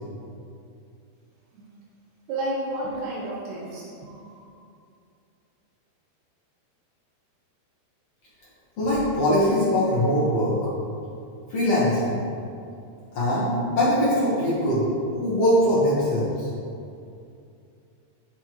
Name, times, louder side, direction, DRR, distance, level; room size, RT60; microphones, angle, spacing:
voice 1, 2.3-4.4, right 1 dB, 75° right, -4 dB, 3.1 m, -32 dB
voice 2, 8.8-10.7 11.5-12.1 13.1-14.9 15.2-16.5, equal, 85° left, -9 dB, 1.4 m, -22 dB
8.7 x 6.7 x 3.0 m, 2.5 s
omnidirectional pair, 5.0 m